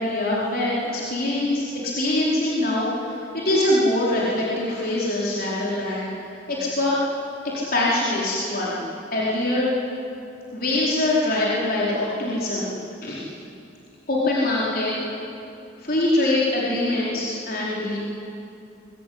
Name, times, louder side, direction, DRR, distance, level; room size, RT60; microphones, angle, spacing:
voice 1, 0.0-6.1 6.5-7.0 7.7-8.8 9.1-9.7 10.5-12.7 13.0-13.2 14.1-14.9 15.8-18.0, left 1 dB, 50° left, -6 dB, 4.7 m, -23 dB
23.5 x 22.5 x 9.7 m, 2.6 s
head